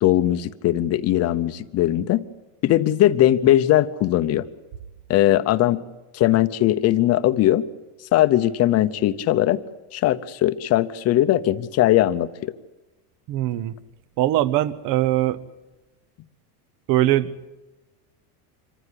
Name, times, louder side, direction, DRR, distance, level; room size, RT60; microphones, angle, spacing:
voice 1, 0.0-2.2 2.6-4.4 5.1-5.8 6.1-7.6 8.1-9.6 9.9-12.5, left 13 dB, 35° left, 12 dB, 0.8 m, -19 dB
voice 2, 13.3-13.7 14.2-15.4 16.9-17.5, right 14 dB, 45° right, 17 dB, 0.9 m, -21 dB
26.0 x 15.0 x 9.8 m, 1.1 s
supercardioid pair, 155°, 47 cm